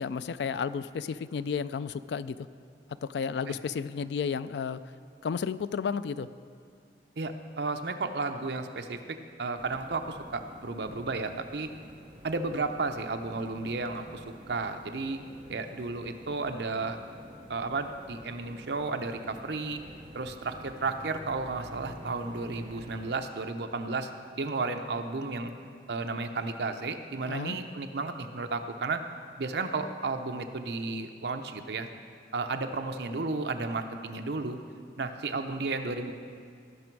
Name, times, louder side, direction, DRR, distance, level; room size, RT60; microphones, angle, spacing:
voice 1, 0.0-2.4 3.0-4.8 5.2-6.3 27.3-27.6, left 6 dB, 75° left, 15 dB, 0.3 m, -32 dB
voice 2, 7.2-9.0 9.4-11.7 12.2-15.2 15.5-17.0 17.5-19.8 20.1-25.5 25.9-29.0 29.4-31.9 32.3-34.6 35.0-36.1, right 3 dB, 70° right, 7 dB, 0.7 m, -33 dB
sound 1, 9.5-23.1, equal, 25° right, 0.7 m, -48 dB
18.0 x 6.1 x 4.6 m, 2.2 s
head